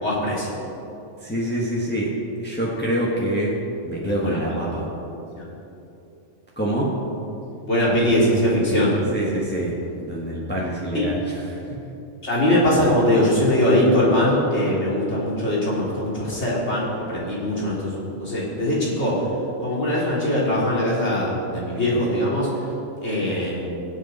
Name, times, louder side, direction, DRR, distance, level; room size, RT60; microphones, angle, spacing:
voice 1, 0.0-0.5 4.2-4.4 5.4-5.5 7.7-9.0 10.9-11.1 12.2-19.2 19.6-22.5 23.0-23.7, left 1 dB, 65° left, -6 dB, 3.6 m, -21 dB
voice 2, 1.2-2.1 2.4-3.5 3.8-4.9 6.6-6.9 9.1-9.7 10.0-11.8, right 1 dB, 10° left, -5 dB, 1.6 m, -25 dB
22.0 x 8.2 x 4.3 m, 2.9 s
omnidirectional pair, 1.2 m